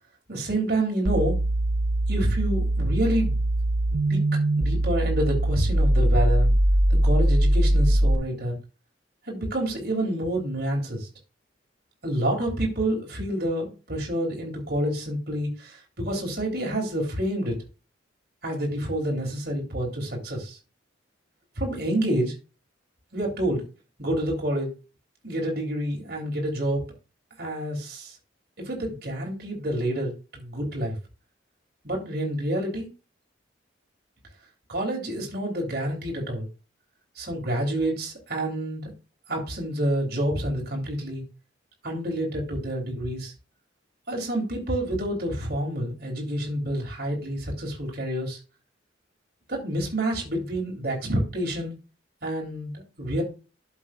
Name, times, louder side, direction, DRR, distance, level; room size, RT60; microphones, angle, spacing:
voice 1, 0.3-1.4 2.1-3.4 3.9-4.2 4.6-6.5 6.9-8.5 9.3-11.1 12.0-17.6 18.4-20.6 21.6-22.3 23.1-23.6 24.0-24.7 25.2-26.8 27.4-28.2 28.6-30.9 31.8-32.9 34.7-36.5 37.1-38.9 39.3-41.2 41.8-43.3 44.1-48.4 49.5-51.8 52.2-53.2, right 1 dB, 55° right, 0 dB, 3.4 m, -28 dB
sound 1, 1.0-8.1, right 1 dB, 90° right, 0.9 m, -22 dB
12.0 x 7.3 x 2.5 m, 0.32 s
head